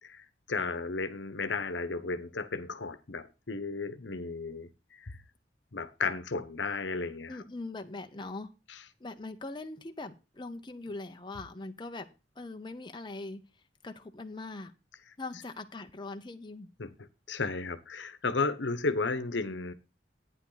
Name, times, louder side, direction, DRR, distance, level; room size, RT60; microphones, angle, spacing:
voice 1, 0.0-4.7 5.0-5.2 5.7-7.4 16.8-16.9 17.3-19.7, left 4 dB, 90° left, 1.0 m, -33 dB
voice 2, 7.3-8.5 9.0-12.1 12.4-13.4 13.8-14.7 15.2-16.7, left 2 dB, 25° left, 0.8 m, -41 dB
12.0 x 9.3 x 4.0 m
head